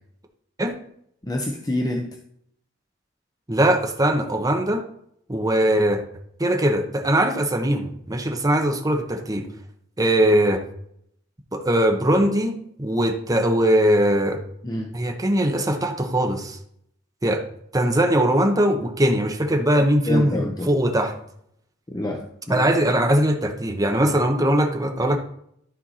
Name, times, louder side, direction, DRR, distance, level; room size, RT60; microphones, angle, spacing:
voice 1, 1.3-2.1 14.6-14.9 20.1-20.7 21.9-22.7, left 1 dB, 20° left, 1 dB, 0.8 m, -27 dB
voice 2, 3.5-4.8 5.3-6.0 6.4-9.5 10.0-10.6 11.5-14.4 14.9-16.6 17.2-17.4 17.7-21.1 22.5-25.2, right 1 dB, 20° right, 4 dB, 1.0 m, -21 dB
13.0 x 4.5 x 4.3 m, 0.71 s
head